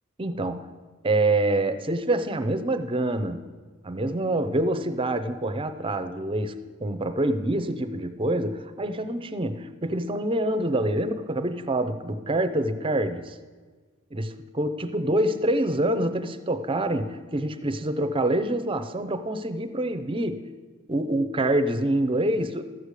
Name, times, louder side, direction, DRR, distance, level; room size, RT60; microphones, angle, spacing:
voice 1, 0.2-0.7 1.0-3.4 3.8-13.4 14.1-20.4 20.9-22.6, right 1 dB, 25° right, 10 dB, 0.6 m, -26 dB
13.5 x 4.9 x 8.2 m, 1.4 s
head